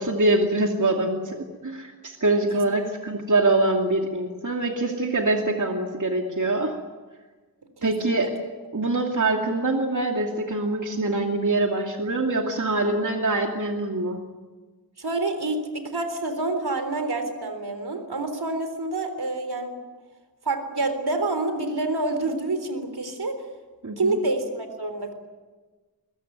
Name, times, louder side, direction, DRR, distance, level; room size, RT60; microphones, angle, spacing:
voice 1, 0.0-6.7 7.8-8.3 8.7-14.2 23.8-24.2, right 2 dB, 50° right, 2 dB, 2.6 m, -24 dB
voice 2, 7.8-8.3 15.0-19.8 20.5-23.4 24.0-25.1, right 2 dB, 75° right, 8 dB, 3.8 m, -27 dB
22.0 x 21.0 x 9.4 m, 1.3 s
wide cardioid pair, 75°, 38 cm